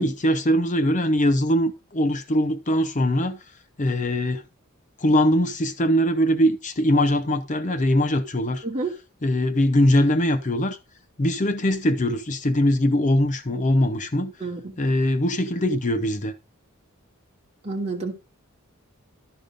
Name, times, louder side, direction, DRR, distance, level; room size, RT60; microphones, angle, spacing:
voice 1, 0.0-3.4 3.8-4.4 5.0-8.6 9.2-10.8 11.2-14.3 14.8-16.3, equal, 35° left, 0.7 m, -21 dB
voice 2, 14.4-14.8 17.6-18.1, right 3 dB, 30° right, 2.7 m, -29 dB
12.5 x 5.2 x 5.2 m
head